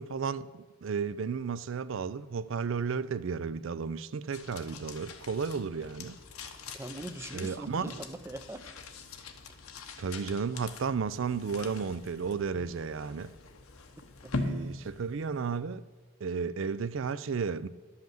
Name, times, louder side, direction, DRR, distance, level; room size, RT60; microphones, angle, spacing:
voice 1, 0.0-6.2 7.3-8.0 10.0-13.3 14.3-15.8 16.2-17.7, right 5 dB, 65° right, 0.4 m, -33 dB
sound 1, 4.3-15.7, left 3 dB, 85° left, 1.0 m, -42 dB
voice 2, 6.7-8.6 14.2-14.3, right 1 dB, 10° right, 0.5 m, -41 dB
11.5 x 5.7 x 7.6 m
head